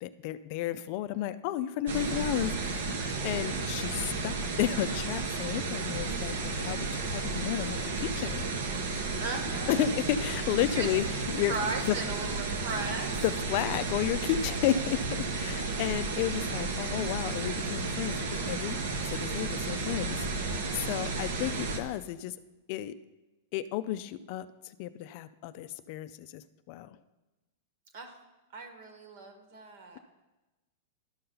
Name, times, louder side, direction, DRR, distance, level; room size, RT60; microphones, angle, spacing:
voice 1, 0.0-8.5 9.7-11.5 11.8-12.0 13.2-18.8 19.1-20.2 20.4-22.4 22.7-23.0 23.5-24.5 24.8-27.0, left 12 dB, 45° left, 13 dB, 0.3 m, -32 dB
voice 2, 1.9-2.4 9.2-9.9 10.7-10.9 11.5-13.5 27.9-28.2 28.5-30.0, right 3 dB, 55° right, 6 dB, 1.5 m, -37 dB
sound 1, 1.9-21.8, right 3 dB, 75° right, 1.1 m, -33 dB
12.0 x 5.6 x 3.9 m, 1.1 s
supercardioid pair, 150°, 0 cm